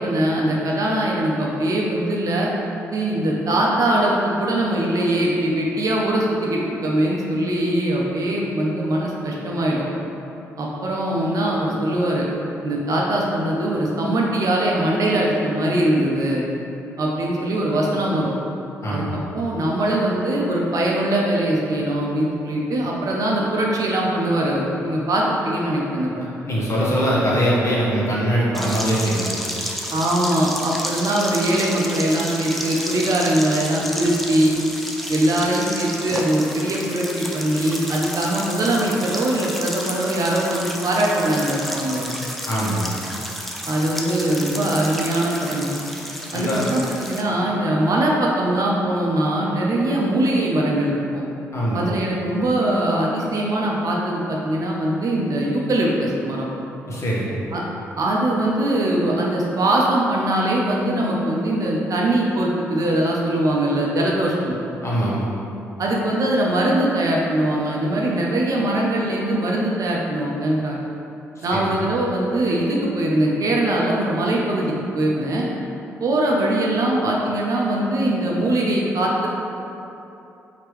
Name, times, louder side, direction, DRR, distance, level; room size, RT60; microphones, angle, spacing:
voice 1, 0.0-2.5 2.9-9.8 10.6-12.3 12.6-16.4 17.0-18.3 18.9-19.0 19.3-26.3 29.9-34.5 35.1-42.1 43.7-45.8 46.3-51.2 51.7-56.5 57.5-57.6 58.0-64.6 65.8-70.8 71.4-75.5 76.0-79.3, right 1 dB, 50° right, -3 dB, 0.7 m, -21 dB
voice 2, 18.8-19.1 26.4-29.5 42.4-42.9 46.3-46.7 51.5-51.9 56.9-57.4 64.8-65.2 71.4-71.7, equal, 40° left, -7 dB, 1.3 m, -22 dB
sound 1, 28.5-47.2, equal, ahead, 0.5 m, -31 dB
4.5 x 2.9 x 3.2 m, 2.8 s
hypercardioid pair, 45°, 8 cm